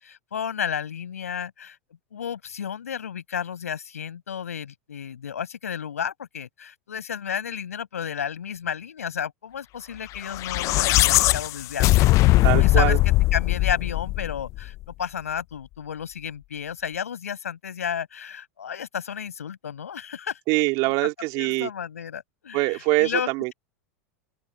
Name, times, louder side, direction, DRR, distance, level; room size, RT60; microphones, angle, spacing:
voice 1, 0.0-1.8 2.1-12.1 12.6-20.4 20.8-20.9 21.3-23.5, left 8 dB, 85° left, 7.5 m, -32 dB
sound 1, 10.3-14.7, left 18 dB, 40° left, 0.3 m, -20 dB
voice 2, 12.4-13.0 20.5-21.7 22.5-23.5, right 25 dB, 55° right, 3.1 m, -23 dB
hypercardioid pair, 100°, 8 cm